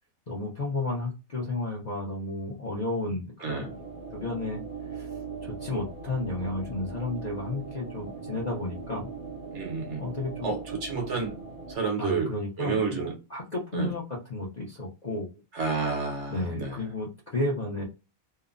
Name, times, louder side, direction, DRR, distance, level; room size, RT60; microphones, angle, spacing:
voice 1, 0.3-3.8 4.1-4.6 4.9-5.1 5.4-9.1 10.0-10.5 12.0-15.3 16.3-17.8, left 2 dB, 45° left, 0.6 m, -32 dB
sound 1, 3.6-11.7, right 4 dB, 40° right, 0.5 m, -40 dB
voice 2, 9.5-10.1 10.4-11.4 11.7-12.3 12.6-13.1 13.7-13.9 15.5-16.8, right 4 dB, 60° right, 1.1 m, -30 dB
2.9 x 2.1 x 2.4 m
omnidirectional pair, 1.5 m